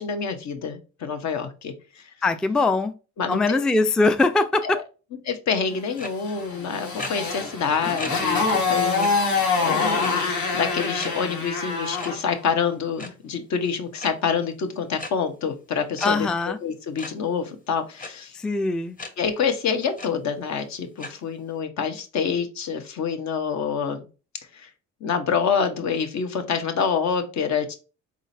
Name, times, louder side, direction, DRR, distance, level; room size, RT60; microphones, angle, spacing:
voice 1, 0.0-2.0 3.2-3.6 4.6-4.8 5.2-16.3 16.6-18.4 19.2-24.0 24.5-24.7 25.0-27.8, left 6 dB, 65° left, 1.0 m, -27 dB
voice 2, 2.2-2.9 3.3-4.8 16.0-16.6 18.3-19.0, left 3 dB, 5° left, 0.3 m, -21 dB
sound 1, 6.0-6.1 7.0-7.1 8.0-8.1 8.5-8.6 9.0-9.1 10.0-10.3 11.0-11.1 12.0-12.1 12.8-13.1 14.0-14.1 15.0-15.1 16.0-16.1 17.0-17.1 18.0-18.1 19.0-19.1 19.6-19.7 20.0-20.1 21.0-21.1, left 2 dB, 30° left, 1.0 m, -34 dB
Motorcycle, 6.2-12.3, left 4 dB, 85° left, 1.9 m, -25 dB
4.1 x 3.7 x 2.7 m
cardioid pair, 90°, 30 cm